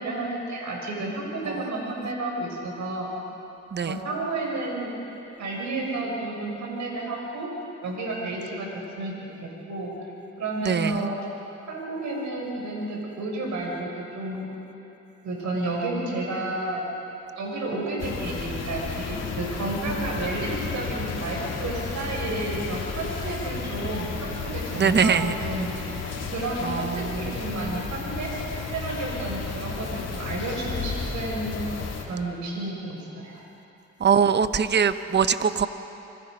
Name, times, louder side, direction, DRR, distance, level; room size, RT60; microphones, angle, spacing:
voice 1, 0.0-3.1 3.8-4.9 5.4-7.5 7.8-9.1 9.4-9.9 10.4-11.2 11.7-14.5 15.2-16.8 17.3-26.0 26.3-28.3 28.6-31.5 32.1-33.4, right 2 dB, 70° right, -1 dB, 6.8 m, -31 dB
voice 2, 3.7-4.0 10.6-11.1 24.8-25.3 26.6-27.4 34.0-35.7, right 6 dB, 35° right, 11 dB, 1.0 m, -23 dB
sound 1, 18.0-32.0, left 4 dB, 55° left, 3.5 m, -33 dB
28.5 x 22.5 x 5.4 m, 3.0 s
cardioid pair, 90°, 30 cm